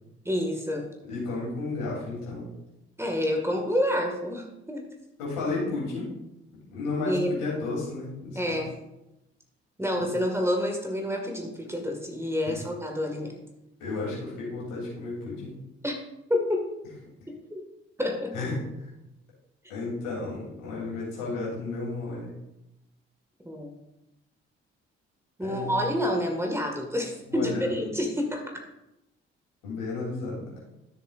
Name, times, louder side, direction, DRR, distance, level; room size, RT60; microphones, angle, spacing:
voice 1, 0.3-0.9 3.0-4.9 7.1-7.4 8.4-8.7 9.8-13.3 15.8-16.0 16.3-16.6 17.3-17.6 18.0-18.3 23.5-23.8 25.4-28.4, left 1 dB, 10° right, 1 dB, 1.9 m, -28 dB
voice 2, 1.1-2.5 5.2-6.1 6.7-8.6 10.0-10.1 12.5-12.6 13.8-15.5 18.3-18.5 19.7-22.3 25.4-25.9 27.3-27.8 29.6-30.6, left 3 dB, 70° left, -5 dB, 3.4 m, -33 dB
12.5 x 7.2 x 2.6 m, 0.91 s
figure-of-eight pair, 40°, 32 cm